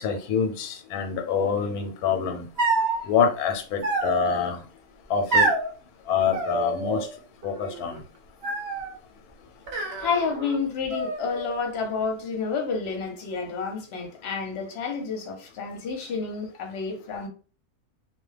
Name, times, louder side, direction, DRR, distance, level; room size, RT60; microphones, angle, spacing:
voice 1, 0.0-2.5 3.0-4.6 5.1-5.5 6.1-7.1 7.4-8.0, left 6 dB, 90° left, 1.1 m, -26 dB
sound 1, 2.6-3.0 3.8-4.5 5.3-5.7 6.3-7.1 7.4-8.0 8.4-9.0 9.7-10.6 10.9-11.6, right 3 dB, 55° right, 0.8 m, -27 dB
voice 2, 10.0-17.3, left 5 dB, 55° left, 0.9 m, -30 dB
2.4 x 2.2 x 3.2 m
omnidirectional pair, 1.6 m